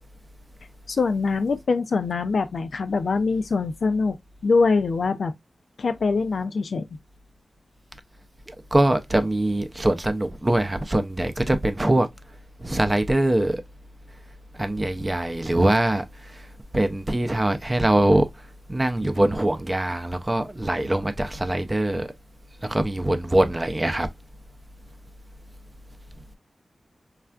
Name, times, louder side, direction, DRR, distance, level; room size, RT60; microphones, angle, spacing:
voice 1, 0.9-5.3 5.8-7.0, left 4 dB, 80° left, 0.3 m, -23 dB
voice 2, 8.7-12.1 12.6-13.6 14.6-16.0 16.7-18.3 18.7-22.1 22.6-24.1, right 1 dB, 30° right, 0.5 m, -22 dB
3.3 x 2.3 x 2.3 m
cardioid pair, 55°, 0 cm